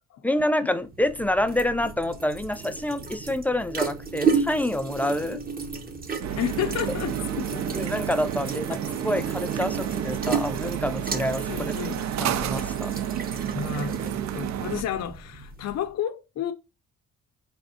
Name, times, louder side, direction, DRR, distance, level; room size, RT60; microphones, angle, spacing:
voice 1, 0.2-5.4 7.7-11.7 12.2-12.9, left 1 dB, 5° left, 0.3 m, -27 dB
sound 1, 0.8-15.9, right 5 dB, 30° right, 0.8 m, -33 dB
sound 2, 6.2-14.8, right 10 dB, 65° right, 0.5 m, -30 dB
voice 2, 6.4-7.9 8.7-8.8 11.5-12.1 13.5-16.5, left 9 dB, 60° left, 0.6 m, -31 dB
4.1 x 3.4 x 2.7 m
cardioid pair, 90°, 30 cm